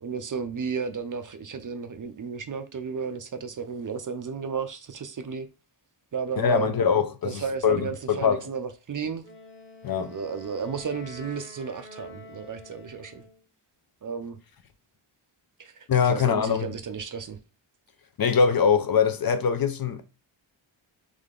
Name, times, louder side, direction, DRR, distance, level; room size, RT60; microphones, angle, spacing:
voice 1, 0.0-5.5 6.1-6.7 7.2-9.3 10.1-13.2 14.0-14.4 15.6-17.4, right 6 dB, 45° right, 0.5 m, -33 dB
voice 2, 6.4-8.4 9.8-10.1 15.9-16.7 18.2-20.0, left 6 dB, 50° left, 0.5 m, -23 dB
Wind instrument woodwind instrument, 9.2-13.4, left 1 dB, 25° left, 0.9 m, -46 dB
3.7 x 3.2 x 3.7 m
wide cardioid pair, 160°, 48 cm